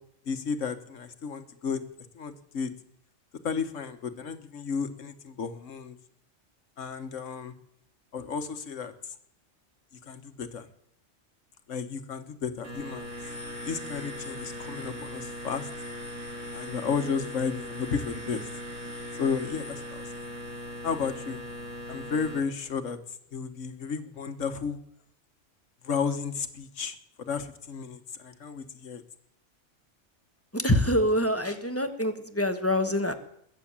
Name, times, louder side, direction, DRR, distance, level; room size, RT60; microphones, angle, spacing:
voice 1, 0.3-1.8 2.1-2.7 3.4-6.0 6.8-7.5 8.1-8.9 10.0-10.7 11.7-13.1 13.7-15.7 16.5-18.4 19.2-19.8 20.8-21.4 21.9-23.0 23.3-24.8 25.8-29.0, left 6 dB, 85° left, 9 dB, 1.6 m, -33 dB
sound 1, 12.6-22.4, left 1 dB, 80° right, 3.0 m, -39 dB
voice 2, 30.5-33.1, left 1 dB, 10° left, 8 dB, 1.2 m, -25 dB
21.0 x 7.4 x 8.8 m, 0.74 s
omnidirectional pair, 1.3 m